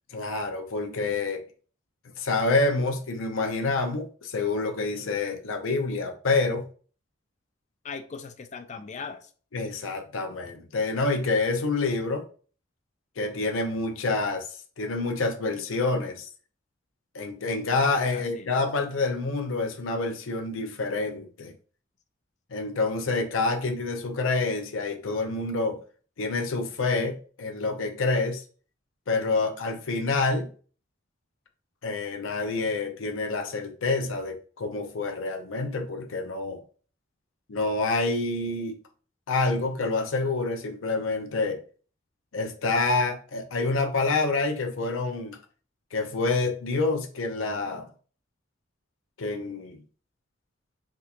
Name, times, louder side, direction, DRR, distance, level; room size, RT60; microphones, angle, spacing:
voice 1, 0.1-1.4 2.2-6.7 9.5-12.2 13.2-16.3 17.1-21.5 22.5-25.8 26.2-28.4 29.1-30.5 31.8-36.6 37.5-38.8 39.3-41.6 42.3-45.4 45.9-47.9 49.2-49.8, left 3 dB, 85° left, 0.6 m, -27 dB
voice 2, 7.8-9.3 17.8-18.5, left 5 dB, 35° left, 0.4 m, -40 dB
3.5 x 2.4 x 2.8 m
head